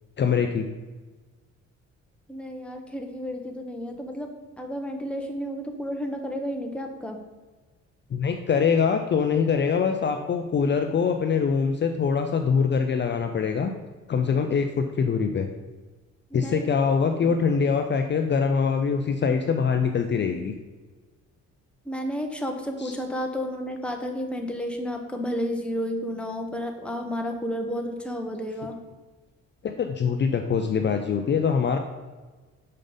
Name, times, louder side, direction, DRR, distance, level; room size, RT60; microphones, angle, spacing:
voice 1, 0.2-0.7 8.1-13.7 14.1-15.5 16.3-20.5 22.8-22.9 29.6-31.8, left 6 dB, 35° left, 5 dB, 0.5 m, -23 dB
voice 2, 2.3-4.3 4.6-7.2 16.3-16.7 21.8-28.8, equal, 5° left, 3 dB, 0.9 m, -31 dB
6.5 x 5.1 x 4.0 m, 1.3 s
cardioid pair, 90°, 30 cm